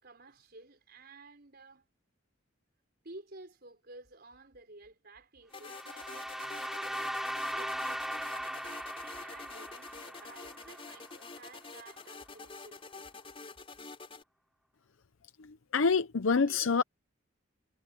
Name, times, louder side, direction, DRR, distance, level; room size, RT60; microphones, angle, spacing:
voice 1, 0.0-1.8 3.0-7.1 7.5-13.1 16.3-16.6, right 2 dB, 50° right, 4.8 m, -53 dB
sound 1, 5.5-14.2, left 4 dB, 30° left, 4.4 m, -48 dB
sound 2, 5.6-11.6, equal, ahead, 3.7 m, -39 dB
voice 2, 15.7-16.8, left 5 dB, 75° left, 0.7 m, -26 dB
head